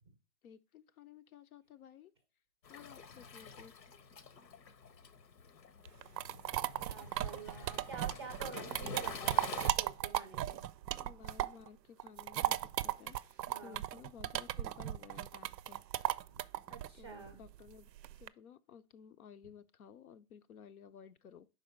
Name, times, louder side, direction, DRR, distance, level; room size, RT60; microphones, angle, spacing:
voice 1, 0.4-2.1 2.7-3.7 11.0-15.8 16.9-17.9 18.2-21.5, left 7 dB, 60° left, 0.6 m, -56 dB
Waves surf, 2.6-9.7, left 5 dB, 80° left, 1.0 m, -49 dB
sound 1, 5.9-11.7 12.0-18.3, right 12 dB, 80° right, 0.5 m, -36 dB
voice 2, 6.8-10.6 13.5-13.8 16.3-16.4 16.7-17.4, right 5 dB, 15° right, 0.5 m, -49 dB
5.2 x 4.2 x 5.1 m
hypercardioid pair, 145°, 50 cm